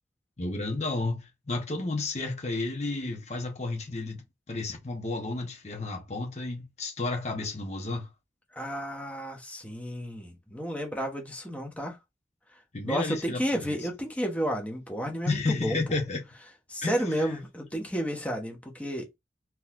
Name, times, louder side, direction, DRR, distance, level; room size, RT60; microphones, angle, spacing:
voice 1, 0.4-8.1 12.7-13.8 15.3-16.2 16.8-17.4, left 3 dB, 40° left, 0.9 m, -32 dB
voice 2, 8.6-12.0 12.8-15.8 16.7-19.2, equal, 10° left, 0.9 m, -32 dB
3.8 x 2.9 x 2.5 m
head